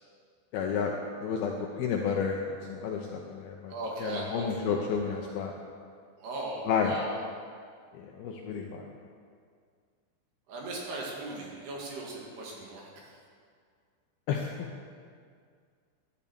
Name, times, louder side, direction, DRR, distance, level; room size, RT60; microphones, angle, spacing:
voice 1, 0.5-5.5 6.7-7.0 7.9-8.9 14.3-14.7, left 6 dB, 75° left, 1 dB, 2.3 m, -31 dB
voice 2, 3.7-4.5 6.2-7.1 10.5-12.9, right 2 dB, 65° right, -3 dB, 4.0 m, -38 dB
12.0 x 11.0 x 7.1 m, 2.1 s
omnidirectional pair, 5.3 m